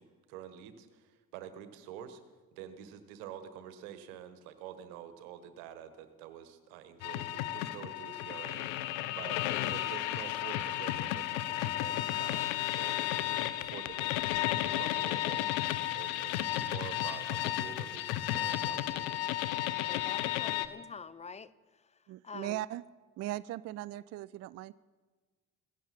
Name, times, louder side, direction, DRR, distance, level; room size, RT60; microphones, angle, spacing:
voice 1, 0.0-2.2 2.5-8.7 9.1-19.2, right 9 dB, 70° right, 10 dB, 1.4 m, -48 dB
sound 1, 7.0-20.7, left 14 dB, 70° left, 0.9 m, -33 dB
voice 2, 19.9-21.5 22.2-22.6, left 5 dB, 15° left, 18 dB, 0.5 m, -46 dB
voice 3, 22.1-22.8 23.2-24.7, right 15 dB, 40° right, 19 dB, 0.4 m, -38 dB
17.0 x 15.0 x 4.3 m, 1.4 s
figure-of-eight pair, 55°, 44 cm